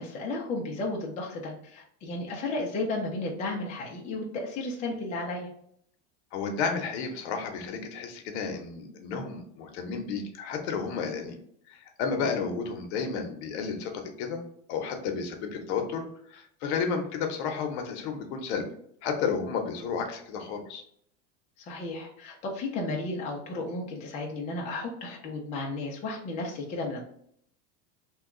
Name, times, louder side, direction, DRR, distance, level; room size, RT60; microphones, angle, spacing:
voice 1, 0.0-5.5 12.2-12.4 21.6-27.1, left 2 dB, 20° left, -1 dB, 0.4 m, -33 dB
voice 2, 6.3-11.4 11.7-14.4 14.7-18.7 19.0-20.8, left 5 dB, 70° left, 5 dB, 0.8 m, -32 dB
2.9 x 2.3 x 3.6 m, 0.67 s
cardioid pair, 165°, 35 cm